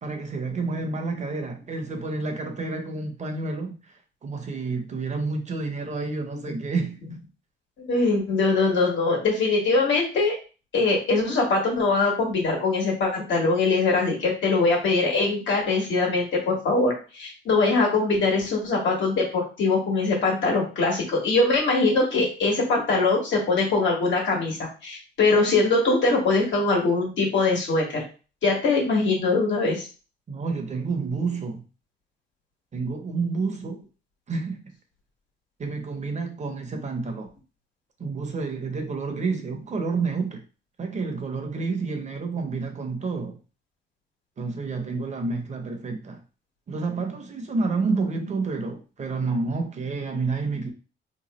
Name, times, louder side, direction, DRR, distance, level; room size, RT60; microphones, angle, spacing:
voice 1, 0.0-3.9 4.2-7.0 30.3-31.6 32.7-33.8 34.3-34.6 35.6-37.3 38.0-40.4 40.8-43.4 44.4-46.2 46.7-50.7, right 4 dB, 35° right, 0.8 m, -29 dB
voice 2, 7.9-10.3 10.7-28.0 28.4-29.9, left 3 dB, 70° left, 1.5 m, -22 dB
3.0 x 2.2 x 4.1 m
cardioid pair, 90°, 20 cm